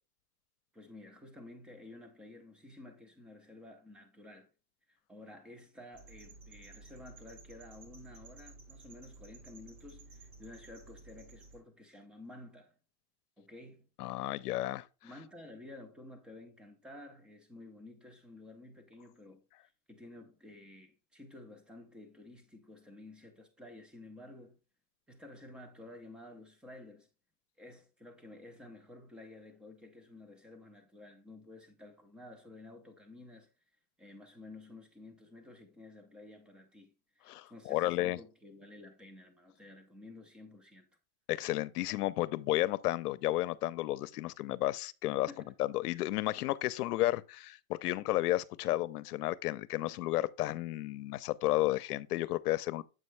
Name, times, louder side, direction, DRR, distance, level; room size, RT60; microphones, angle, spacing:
voice 1, 0.7-4.5 4.9-12.8 13.4-13.9 15.0-24.6 25.1-27.1 27.6-33.5 34.0-40.9 45.3-45.5, left 2 dB, ahead, 0.3 m, -52 dB
sound 1, 5.9-11.6, right 3 dB, 70° right, 2.8 m, -54 dB
voice 2, 14.0-14.9 37.3-38.2 41.3-45.3 45.6-52.8, left 16 dB, 80° left, 0.6 m, -32 dB
7.6 x 5.4 x 3.2 m
supercardioid pair, 135°, 45 cm